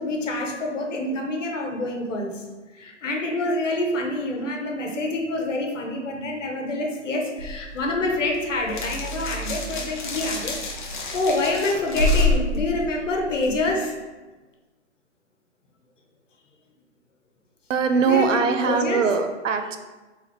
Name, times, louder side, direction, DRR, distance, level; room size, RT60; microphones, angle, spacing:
voice 1, 0.0-2.4 2.7-13.9 18.0-18.3 18.6-19.0, left 2 dB, 80° left, 1 dB, 1.1 m, -27 dB
sound 1, 7.4-13.7, left 2 dB, 40° left, 0.6 m, -28 dB
voice 2, 17.7-19.8, right 5 dB, 90° right, 7 dB, 0.7 m, -21 dB
4.2 x 3.8 x 3.2 m, 1.2 s
hypercardioid pair, 175°, 37 cm